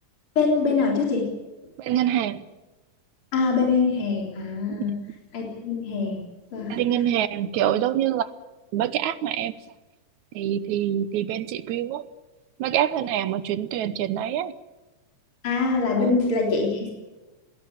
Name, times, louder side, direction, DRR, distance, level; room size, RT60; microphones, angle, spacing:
voice 1, 0.4-1.3 3.3-4.9 5.3-6.2 6.5-6.8 15.4-16.9, left 4 dB, 45° left, -1 dB, 4.5 m, -23 dB
voice 2, 1.8-2.4 4.8-4.9 6.7-8.3 8.7-9.5 10.4-12.1 12.6-14.5 16.0-16.2, right 11 dB, 75° right, 15 dB, 2.3 m, -25 dB
20.5 x 17.5 x 8.8 m, 1.1 s
omnidirectional pair, 3.4 m